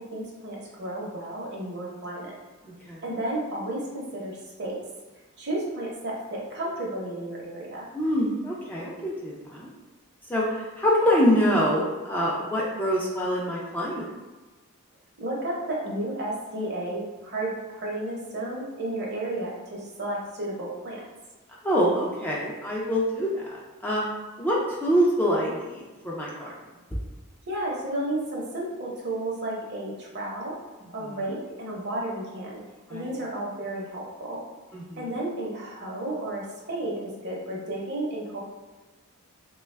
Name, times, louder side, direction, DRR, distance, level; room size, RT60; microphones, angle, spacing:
voice 1, 0.1-2.3 3.0-4.8 5.4-7.9 15.2-21.0 27.5-30.5 30.9-32.6 32.9-34.4 35.0-38.4, right 1 dB, 50° right, -3 dB, 0.8 m, -32 dB
voice 2, 2.6-3.0 7.9-9.7 10.3-14.0 21.6-24.0 24.4-26.5 32.9-33.2 34.7-35.1, equal, 10° left, -5 dB, 0.4 m, -25 dB
3.3 x 2.3 x 3.2 m, 1.2 s
head